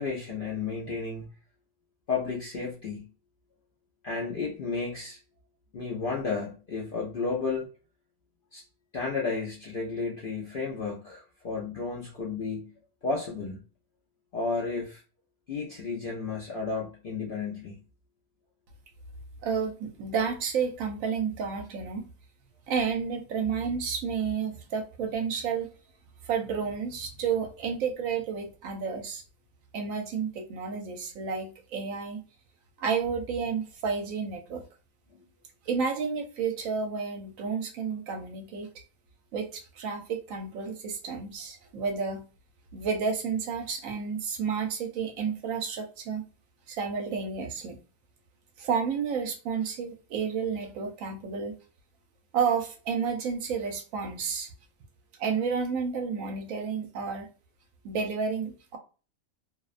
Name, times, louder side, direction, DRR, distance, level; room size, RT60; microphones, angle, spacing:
voice 1, 0.0-1.3 2.1-3.1 4.0-5.2 5.7-7.7 8.5-8.6 8.9-12.7 13.0-13.6 14.3-15.0 15.5-17.8, left 4 dB, 65° left, 0.5 m, -32 dB
voice 2, 19.4-22.0 22.7-25.7 26.2-29.2 29.7-32.2 32.8-34.6 35.7-38.7 39.3-42.2 42.7-46.2 46.7-47.8 48.6-51.6 52.3-54.5 55.2-57.3 57.8-58.8, right 6 dB, 75° right, 0.9 m, -31 dB
2.6 x 2.1 x 2.4 m
omnidirectional pair, 1.5 m